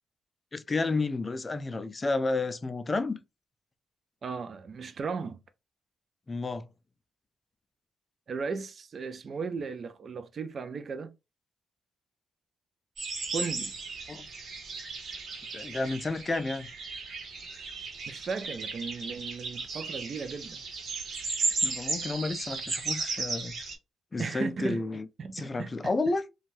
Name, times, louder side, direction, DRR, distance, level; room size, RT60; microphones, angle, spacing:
voice 1, 0.5-3.2 6.3-6.7 14.1-14.3 15.5-16.7 21.6-23.6 24.1-25.1 25.3-26.2, left 3 dB, 25° left, 0.3 m, -31 dB
voice 2, 4.2-5.4 8.3-11.1 13.3-13.7 18.1-20.6 24.2-24.8 25.2-25.9, right 5 dB, 50° right, 0.4 m, -36 dB
sound 1, 13.0-23.7, right 3 dB, 65° right, 1.1 m, -35 dB
2.6 x 2.2 x 3.0 m
cardioid pair, 100°, 0 cm